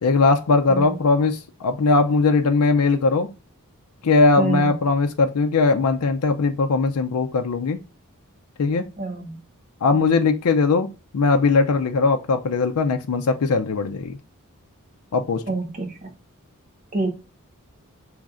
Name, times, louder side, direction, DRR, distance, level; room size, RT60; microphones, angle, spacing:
voice 1, 0.0-3.3 4.0-7.8 8.6-8.9 9.8-14.2 15.1-15.4, left 3 dB, 85° left, 0.5 m, -20 dB
voice 2, 4.4-4.7 9.0-9.4 15.5-16.1 16.9-17.1, right 3 dB, 35° right, 1.1 m, -26 dB
6.0 x 3.2 x 2.4 m
head